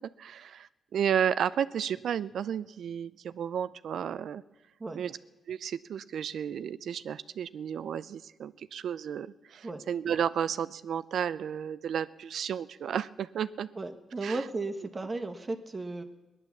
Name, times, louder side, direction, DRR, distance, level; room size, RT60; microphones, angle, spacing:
voice 1, 0.2-4.4 4.9-5.2 5.5-13.7 14.2-14.4, right 8 dB, 70° right, 16 dB, 0.5 m, -32 dB
voice 2, 13.7-16.0, right 3 dB, 30° right, 6 dB, 1.3 m, -35 dB
18.5 x 11.0 x 7.2 m, 1.1 s
cardioid pair, 85°, 0 cm